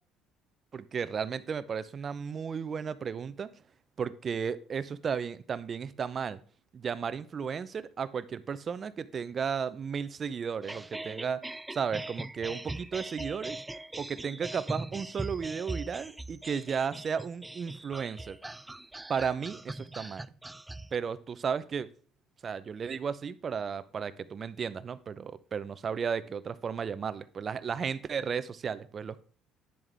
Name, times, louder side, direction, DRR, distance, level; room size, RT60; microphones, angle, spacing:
voice 1, 0.7-3.5 4.0-6.4 6.7-11.4 11.7-13.6 14.0-18.4 19.1-20.3 20.9-21.9 22.4-29.2, right 6 dB, 40° right, 15 dB, 0.7 m, -34 dB
sound 1, 10.6-21.0, right 2 dB, 10° right, 0.3 m, -41 dB
10.0 x 7.2 x 3.5 m, 0.42 s
supercardioid pair, 70°, 0 cm